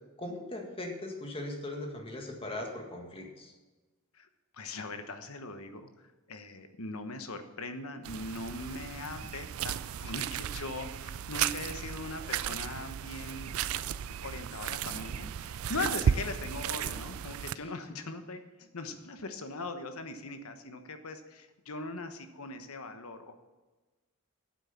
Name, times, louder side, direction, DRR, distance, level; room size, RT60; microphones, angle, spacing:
voice 1, 0.2-3.5, left 1 dB, 25° left, 2 dB, 1.8 m, -39 dB
voice 2, 4.5-5.9 6.3-13.9 14.2-23.4, left 2 dB, 80° left, 8 dB, 1.2 m, -40 dB
sound 1, 8.0-17.5, right 8 dB, 75° right, 0.4 m, -35 dB
9.0 x 7.8 x 7.1 m, 1.2 s
head